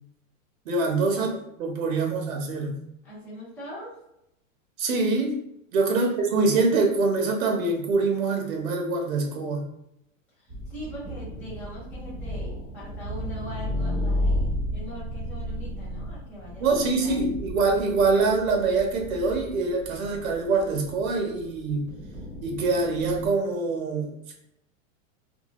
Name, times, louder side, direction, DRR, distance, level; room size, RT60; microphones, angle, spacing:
voice 1, 0.7-2.7 4.8-5.4 5.7-9.7 16.6-21.9 22.4-24.3, right 3 dB, 90° right, 2 dB, 0.9 m, -24 dB
voice 2, 3.0-4.0 5.8-6.4 10.4-17.3, equal, 5° left, -9 dB, 0.4 m, -42 dB
sound 1, 10.5-23.3, left 1 dB, 15° right, 0.8 m, -33 dB
2.6 x 2.3 x 3.0 m, 0.79 s
supercardioid pair, 155°, 40 cm